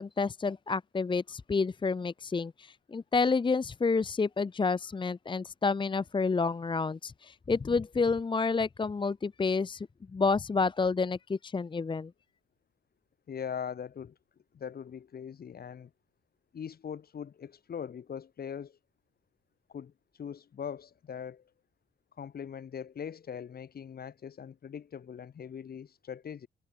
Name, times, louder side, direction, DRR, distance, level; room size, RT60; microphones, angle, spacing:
voice 1, 0.0-12.1, left 4 dB, 25° left, 0.8 m, -29 dB
voice 2, 13.3-14.1 14.5-15.9 16.5-18.8 19.7-19.9 20.2-21.4 22.2-26.5, left 7 dB, 50° left, 3.1 m, -41 dB
cardioid pair, 90°, 20 cm